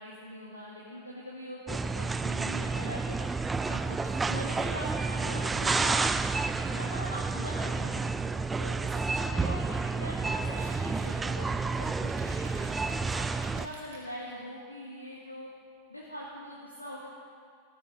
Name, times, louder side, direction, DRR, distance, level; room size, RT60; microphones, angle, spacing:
voice 1, 0.0-3.2 3.6-4.0 4.3-6.0 6.4-8.1 8.6-12.4 12.8-13.3 13.5-15.5 15.9-17.1, equal, 85° left, -5 dB, 1.7 m, -42 dB
sound 1, 1.7-13.7, right 4 dB, 10° right, 0.4 m, -30 dB
sound 2, 10.3-14.1, right 3 dB, 50° right, 2.3 m, -50 dB
16.0 x 15.0 x 2.6 m, 2.1 s
figure-of-eight pair, 90°, 0 cm